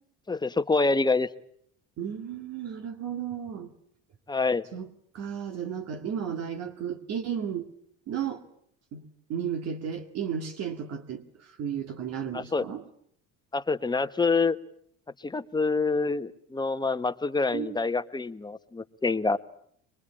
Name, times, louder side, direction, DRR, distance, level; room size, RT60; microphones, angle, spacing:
voice 1, 0.3-1.3 4.3-4.6 12.3-12.7 13.5-14.6 15.2-19.4, left 3 dB, 15° left, 11 dB, 1.0 m, -26 dB
voice 2, 2.0-3.7 4.7-4.9 5.1-7.7 8.1-8.4 8.9-9.0 9.3-12.8 17.5-17.8, right 8 dB, 55° right, 5 dB, 2.0 m, -33 dB
23.0 x 22.0 x 8.6 m, 0.68 s
supercardioid pair, 95°, 30 cm